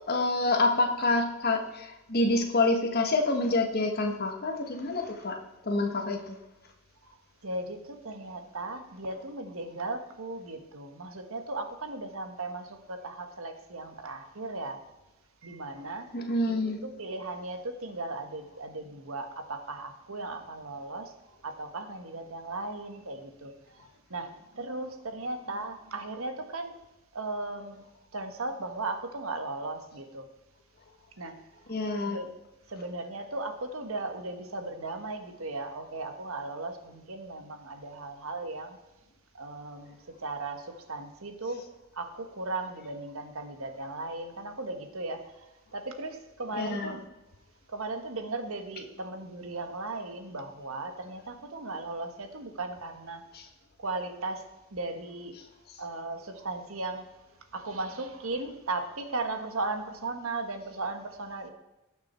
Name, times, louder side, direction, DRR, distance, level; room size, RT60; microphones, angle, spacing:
voice 1, 0.1-5.4 5.6-6.4 16.1-16.8 31.7-32.2 46.6-46.9 53.3-53.4, left 2 dB, 45° left, 3 dB, 1.5 m, -27 dB
voice 2, 7.4-14.8 15.4-16.1 16.6-21.1 21.4-26.7 27.1-27.8 28.1-30.3 31.2-31.4 32.0-32.3 32.7-38.8 39.3-41.6 41.9-45.5 45.7-47.0 47.7-53.2 53.8-54.4 54.7-55.4 55.8-57.0 57.5-61.5, right 2 dB, 70° right, 6 dB, 1.4 m, -37 dB
18.5 x 6.2 x 4.4 m, 0.99 s
head